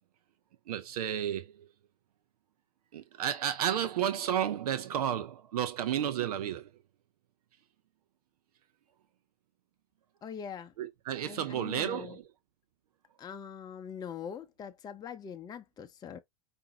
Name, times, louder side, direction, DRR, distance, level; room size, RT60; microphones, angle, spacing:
voice 1, 0.7-1.7 2.9-6.7 10.8-12.2, right 10 dB, 75° right, 0.6 m, -32 dB
voice 2, 10.2-10.7 11.2-12.2 13.2-16.2, left 7 dB, 20° left, 0.6 m, -42 dB
5.0 x 2.6 x 2.9 m
hypercardioid pair, 105°, 20 cm